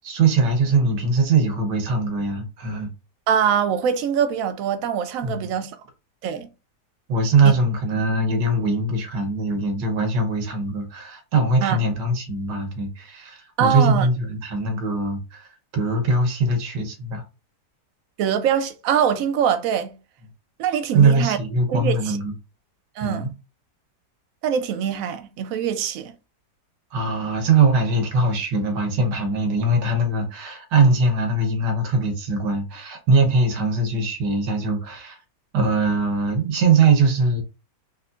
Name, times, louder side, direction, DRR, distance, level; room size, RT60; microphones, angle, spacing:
voice 1, 0.0-2.9 5.2-5.5 7.1-17.2 20.9-22.3 23.0-23.3 26.9-35.2 35.5-37.4, right 3 dB, 85° right, 1.5 m, -21 dB
voice 2, 3.3-5.7 6.2-6.5 7.4-7.6 11.6-11.8 13.6-14.1 18.2-20.0 20.6-21.4 21.7-22.2 23.0-23.3 24.4-26.1, right 8 dB, 70° right, 0.8 m, -23 dB
3.5 x 3.0 x 2.4 m
omnidirectional pair, 1.8 m